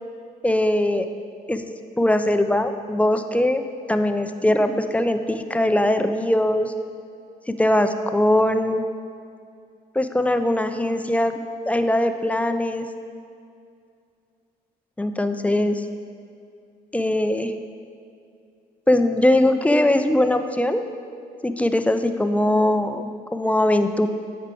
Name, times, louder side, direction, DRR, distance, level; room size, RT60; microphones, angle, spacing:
voice 1, 0.4-1.1 1.5-1.6 2.0-3.6 3.9-6.7 7.5-8.8 10.0-11.4 11.7-12.9 15.0-15.8 16.9-17.5 18.9-20.8 21.4-24.1, left 1 dB, 10° left, 8 dB, 0.4 m, -21 dB
8.7 x 4.7 x 3.8 m, 2.4 s
supercardioid pair, 65°, 18 cm